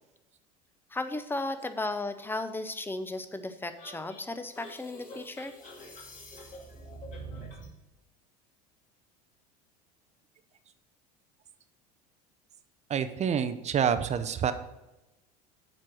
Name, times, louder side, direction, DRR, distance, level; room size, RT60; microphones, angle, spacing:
voice 1, 0.9-5.5, left 2 dB, 10° left, 10 dB, 0.7 m, -35 dB
sound 1, 3.8-7.7, right 1 dB, 40° left, 2.5 m, -45 dB
voice 2, 12.9-14.5, right 8 dB, 35° right, 11 dB, 0.7 m, -27 dB
7.5 x 4.5 x 6.2 m, 0.98 s
hypercardioid pair, 85°, 20 cm